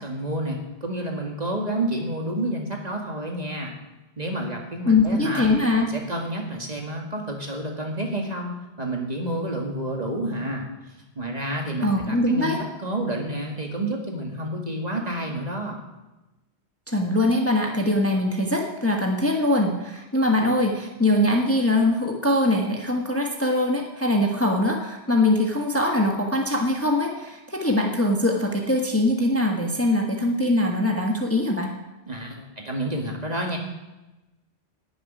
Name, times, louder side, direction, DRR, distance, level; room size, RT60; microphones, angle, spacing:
voice 1, 0.0-3.7 4.2-5.5 5.9-10.7 11.2-12.5 12.8-15.8 32.1-33.6, right 1 dB, 40° right, 1 dB, 2.1 m, -29 dB
voice 2, 4.9-5.9 11.8-12.6 16.9-31.7, left 1 dB, 15° left, 1 dB, 1.3 m, -22 dB
11.0 x 7.3 x 9.6 m, 1.0 s
omnidirectional pair, 1.1 m